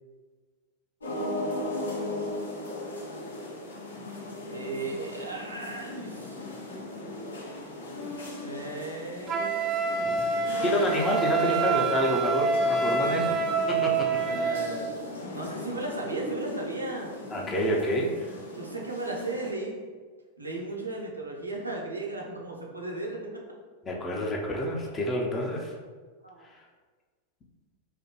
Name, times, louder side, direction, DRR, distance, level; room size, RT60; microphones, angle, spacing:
sound 1, 1.0-19.5, left 1 dB, 75° left, 1.3 m, -38 dB
voice 1, 4.5-6.5 8.3-9.7 9.9-10.4 14.2-14.9 15.3-17.1 18.5-19.9 20.4-23.4 26.2-26.4, right 2 dB, 80° right, -2 dB, 0.7 m, -36 dB
Wind instrument woodwind instrument, 9.3-14.7, right 5 dB, 30° right, 0.4 m, -27 dB
voice 2, 10.6-13.4 13.7-14.2 17.3-18.3 23.8-25.8 26.5-26.6, left 1 dB, 20° left, 0 dB, 0.6 m, -28 dB
4.8 x 2.1 x 3.0 m, 1.5 s
figure-of-eight pair, 90°, 0 cm